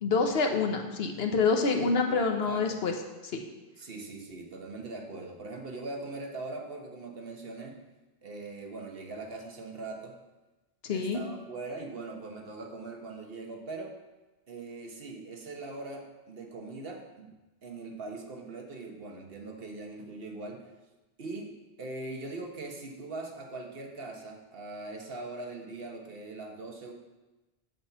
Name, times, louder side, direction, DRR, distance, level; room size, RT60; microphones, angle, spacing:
voice 1, 0.0-2.9 3.3-3.4 10.8-11.2, left 4 dB, 75° left, 4 dB, 1.1 m, -27 dB
voice 2, 1.8-2.2 2.5-2.8 3.8-7.8 8.2-10.2 10.9-13.9 14.5-17.3 17.6-20.7 21.2-26.9, right 3 dB, 65° right, 2 dB, 1.3 m, -41 dB
7.6 x 4.3 x 6.9 m, 1.1 s
omnidirectional pair, 1.1 m